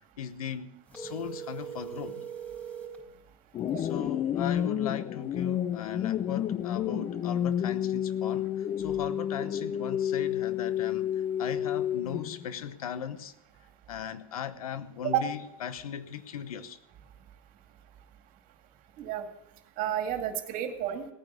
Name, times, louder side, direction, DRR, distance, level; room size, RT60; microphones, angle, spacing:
voice 1, 0.2-2.2 3.8-13.3 13.9-16.8, left 8 dB, 80° left, 13 dB, 1.0 m, -38 dB
sound 1, 0.9-3.0, right 8 dB, 10° left, 4.4 m, -40 dB
sound 2, 3.5-12.5, left 10 dB, 30° left, 0.5 m, -30 dB
voice 2, 19.0-19.3 19.8-21.1, right 11 dB, 50° right, 6 dB, 2.2 m, -31 dB
17.5 x 9.5 x 6.3 m, 0.84 s
hypercardioid pair, 95°, 18 cm